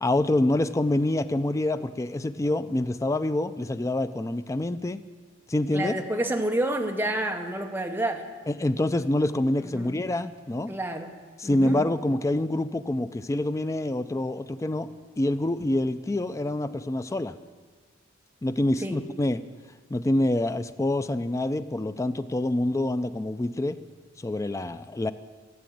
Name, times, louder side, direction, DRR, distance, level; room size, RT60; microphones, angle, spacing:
voice 1, 0.0-5.0 5.5-5.9 8.5-10.7 11.4-14.9 15.2-17.4 18.4-19.4 19.9-23.8 24.2-25.1, left 1 dB, 15° left, 11 dB, 0.3 m, -26 dB
voice 2, 5.7-8.3 9.6-9.9 10.7-11.1 11.4-11.8 18.8-19.0, right 1 dB, 10° right, 4 dB, 0.8 m, -29 dB
13.0 x 7.0 x 7.7 m, 1.5 s
head